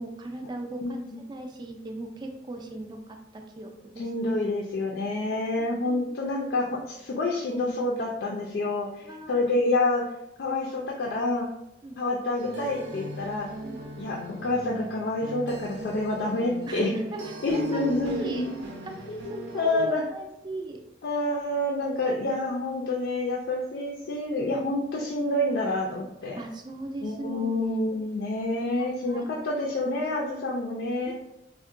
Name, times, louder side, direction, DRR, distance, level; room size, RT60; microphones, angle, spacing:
voice 1, 0.0-1.0 1.3-4.0 5.6-6.1 9.0-9.5 11.8-12.0 13.6-13.8 16.7-18.5 18.8-20.8 26.4-27.7 28.8-29.3 31.1-31.2, right 1 dB, 25° right, 3 dB, 0.3 m, -38 dB
voice 2, 0.8-1.2 4.0-10.0 10.4-11.5 12.0-13.5 14.0-17.0 17.4-18.6 19.1-20.0 21.0-26.4 27.0-31.1, left 2 dB, 70° left, -2 dB, 0.4 m, -28 dB
sound 1, 12.4-19.9, right 2 dB, 75° right, 0.6 m, -39 dB
3.5 x 2.1 x 2.4 m, 0.84 s
head